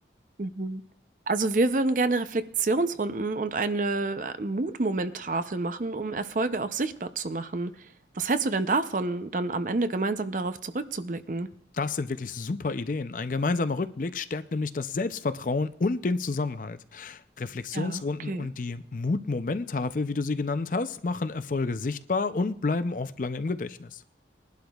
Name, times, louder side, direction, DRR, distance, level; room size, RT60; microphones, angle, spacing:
voice 1, 0.4-0.8 1.3-7.9 8.1-11.5 17.7-18.5, right 3 dB, 45° right, 0.6 m, -28 dB
voice 2, 11.7-24.0, left 3 dB, 45° left, 0.5 m, -29 dB
21.0 x 11.5 x 2.4 m
head